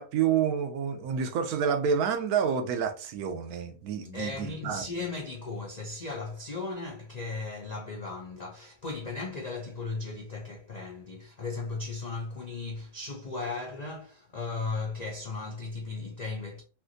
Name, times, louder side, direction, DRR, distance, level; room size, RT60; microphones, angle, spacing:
voice 1, 0.0-4.8, right 7 dB, 80° right, 1.1 m, -28 dB
voice 2, 4.1-16.6, left 3 dB, 70° left, 0.4 m, -36 dB
3.3 x 2.8 x 2.6 m
omnidirectional pair, 1.6 m